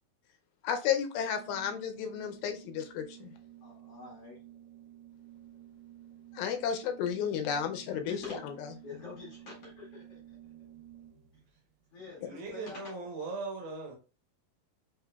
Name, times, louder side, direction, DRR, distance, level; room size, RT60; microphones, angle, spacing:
voice 1, 0.6-3.3 6.3-8.2, left 8 dB, 80° left, 2.3 m, -32 dB
Organ, 1.2-11.4, right 12 dB, 85° right, 2.5 m, -53 dB
voice 2, 3.6-4.4 7.8-8.5 8.8-10.4 11.3-11.4 11.9-13.1, left 4 dB, 55° left, 1.9 m, -46 dB
voice 3, 12.2-14.0, right 3 dB, 70° right, 2.2 m, -39 dB
5.4 x 3.6 x 2.2 m
omnidirectional pair, 4.4 m